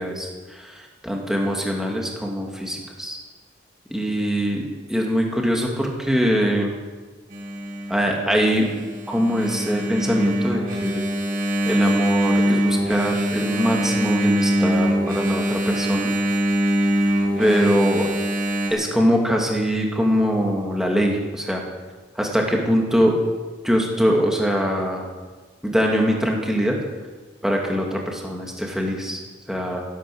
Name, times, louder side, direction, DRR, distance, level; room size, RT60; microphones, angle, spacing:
voice 1, 0.0-3.2 3.9-6.7 7.9-8.7 9.1-11.0 11.7-16.1 17.4-18.1 18.7-21.6 22.2-23.2 23.6-25.1 25.6-26.8 27.4-29.2 29.5-29.8, equal, 5° right, 0 dB, 2.4 m, -22 dB
Engine, 7.3-18.7, equal, 45° right, 3.4 m, -23 dB
14.5 x 12.0 x 7.9 m, 1.3 s
head